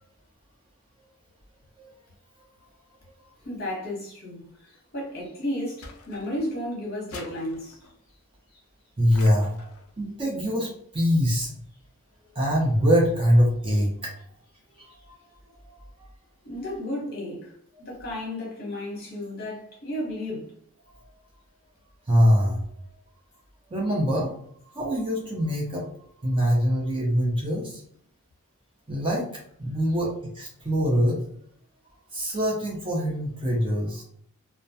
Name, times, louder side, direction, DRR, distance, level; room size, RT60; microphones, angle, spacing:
voice 1, 3.4-7.7 8.5-8.6 16.4-17.5 17.8-20.5, left 1 dB, 45° left, 0.9 m, -33 dB
sound 1, 5.8-6.6 7.1-8.0 9.1-9.9, left 3 dB, 70° left, 0.4 m, -45 dB
voice 2, 9.0-9.5 10.0-11.5 12.3-14.2 14.8-15.1 15.5-15.7 22.1-22.6 23.7-24.3 24.6-27.8 28.9-29.2 29.6-31.2 32.1-34.0, equal, 25° right, 0.5 m, -24 dB
2.2 x 2.1 x 2.6 m
head